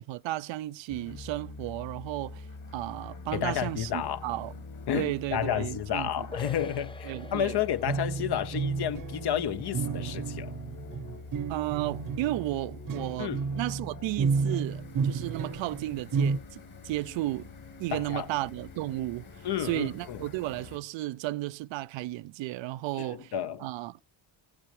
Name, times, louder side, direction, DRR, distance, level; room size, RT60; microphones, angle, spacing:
voice 1, 0.0-2.5 2.7-4.5 4.9-6.3 7.0-7.5 11.5-16.6 16.8-17.5 17.8-19.3 19.6-23.3 23.6-24.0, right 17 dB, 80° right, 0.5 m, -33 dB
sound 1, 0.9-20.8, left 3 dB, 45° left, 2.3 m, -45 dB
voice 2, 3.3-4.3 4.9-10.5 13.2-13.4 17.9-18.3 19.4-20.2 23.1-23.7, left 10 dB, 60° left, 1.0 m, -31 dB
sound 2, 6.3-11.8, left 3 dB, 10° left, 0.6 m, -49 dB
sound 3, 7.9-16.4, right 5 dB, 50° right, 0.9 m, -31 dB
19.0 x 8.5 x 3.2 m
cardioid pair, 110°, 44 cm